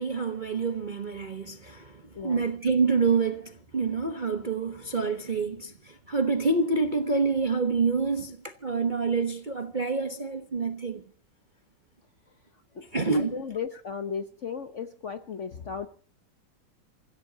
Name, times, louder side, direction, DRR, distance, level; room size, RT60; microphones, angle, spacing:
voice 1, 0.0-11.0 12.9-13.4, right 4 dB, 35° right, 0.9 m, -27 dB
voice 2, 2.1-2.5 12.7-12.8 13.1-15.9, left 6 dB, 50° left, 1.0 m, -35 dB
29.0 x 15.5 x 2.8 m
omnidirectional pair, 2.3 m